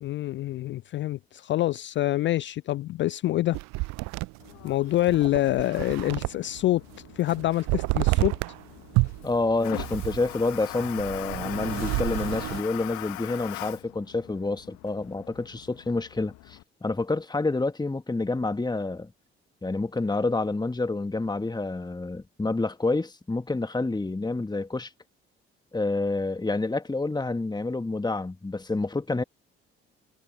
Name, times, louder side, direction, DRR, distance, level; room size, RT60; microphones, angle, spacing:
voice 1, 0.0-3.6 4.6-6.8 7.2-8.3, left 15 dB, 35° left, 0.4 m, -26 dB
sound 1, 3.5-6.6 6.9-8.6 8.9-12.6, right 25 dB, 55° right, 0.6 m, -30 dB
Toilet flush, 4.4-16.6, left 21 dB, 60° left, 1.5 m, -42 dB
voice 2, 9.2-19.1 19.6-24.9 25.7-29.2, left 3 dB, 10° left, 1.9 m, -28 dB
figure-of-eight pair, 45°, 33 cm